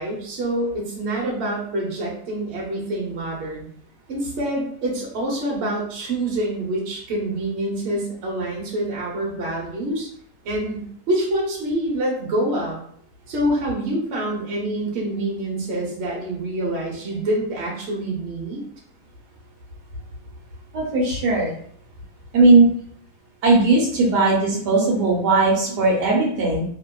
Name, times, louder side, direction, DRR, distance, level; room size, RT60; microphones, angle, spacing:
voice 1, 0.0-3.7 4.1-10.1 10.4-12.8 13.3-18.6, right 1 dB, 50° right, -2 dB, 1.0 m, -26 dB
voice 2, 20.7-21.5 22.3-22.7 23.4-26.6, right 3 dB, 85° right, -2 dB, 1.4 m, -17 dB
2.9 x 2.6 x 2.2 m, 0.62 s
omnidirectional pair, 1.7 m